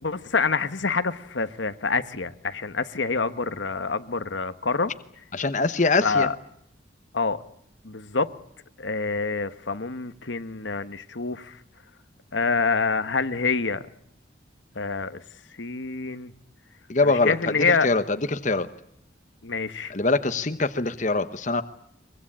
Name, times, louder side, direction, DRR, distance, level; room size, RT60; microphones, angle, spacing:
voice 1, 0.0-4.9 6.0-6.3 7.1-7.4 7.8-8.3 8.8-11.6 12.3-13.8 14.7-15.2 15.6-16.3 17.0-17.9 19.4-19.9, left 4 dB, 70° left, 11 dB, 1.2 m, -26 dB
voice 2, 5.3-6.3 16.9-17.3 17.8-18.0 18.3-18.7 19.9-21.6, left 3 dB, 40° left, 10 dB, 1.0 m, -23 dB
23.5 x 23.0 x 8.6 m, 0.73 s
head